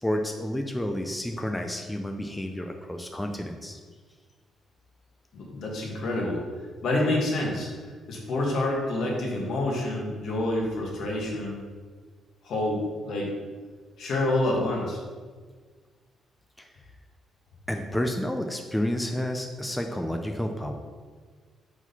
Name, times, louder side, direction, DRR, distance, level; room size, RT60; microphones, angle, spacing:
voice 1, 0.0-3.8 16.6-16.7 17.7-20.7, left 1 dB, 5° left, 4 dB, 0.5 m, -30 dB
voice 2, 5.3-6.4 6.8-7.7 8.1-11.6 12.4-13.3 14.0-15.0, left 1 dB, 70° left, -2 dB, 1.6 m, -27 dB
4.9 x 4.1 x 5.3 m, 1.5 s
cardioid pair, 90°, 0 cm